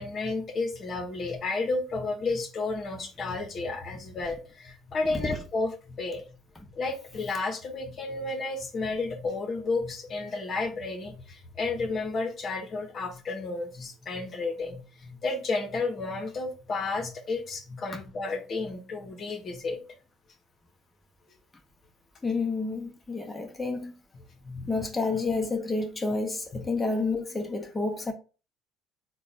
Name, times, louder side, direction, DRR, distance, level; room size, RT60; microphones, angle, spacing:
voice 1, 0.0-6.2 6.7-19.8 24.4-24.7 26.5-26.6, left 3 dB, 45° left, 1.0 m, -32 dB
voice 2, 22.2-23.9 24.7-28.1, left 3 dB, 15° left, 0.9 m, -29 dB
4.0 x 2.3 x 4.1 m
hypercardioid pair, 65°, 0 cm